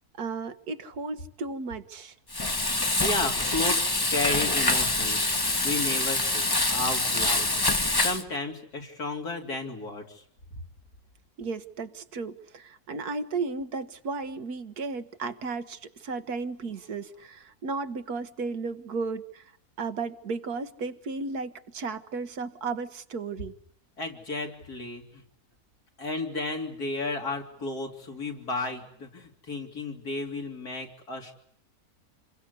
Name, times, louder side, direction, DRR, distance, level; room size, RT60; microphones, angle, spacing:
voice 1, 0.1-2.1 11.4-19.5 19.8-23.6, right 4 dB, 80° right, 9 dB, 1.8 m, -34 dB
Frying (food), 2.3-8.2, left 2 dB, 15° left, 1.0 m, -25 dB
voice 2, 3.0-10.2 24.0-25.2 26.0-31.4, left 2 dB, 85° left, 2 dB, 3.8 m, -33 dB
28.0 x 22.0 x 8.2 m, 0.65 s
omnidirectional pair, 1.6 m